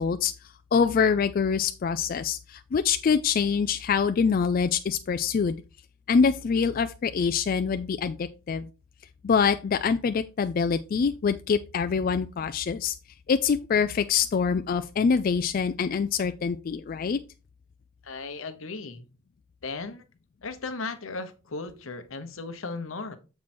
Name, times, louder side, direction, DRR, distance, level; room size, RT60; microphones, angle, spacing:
voice 1, 0.0-5.6 6.1-8.7 9.2-12.9 13.3-17.2, left 6 dB, 45° left, 0.3 m, -25 dB
voice 2, 18.0-19.0 19.6-20.0 20.4-23.2, left 3 dB, 75° left, 0.9 m, -36 dB
7.4 x 4.6 x 4.3 m
head